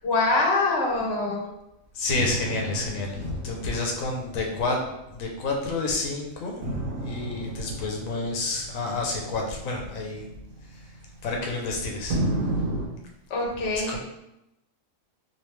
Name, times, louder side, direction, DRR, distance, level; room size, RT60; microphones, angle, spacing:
voice 1, 0.0-1.4 13.3-14.0, left 2 dB, 55° left, -1 dB, 1.0 m, -24 dB
voice 2, 1.9-4.8 5.1-10.3 10.7-10.8 11.2-12.2 13.9-14.0, left 3 dB, 85° left, 0 dB, 1.0 m, -29 dB
sound 1, 2.1-5.8 6.6-11.6 12.1-12.9, right 1 dB, 75° right, 1.0 m, -33 dB
3.0 x 2.7 x 3.2 m, 0.88 s
omnidirectional pair, 1.4 m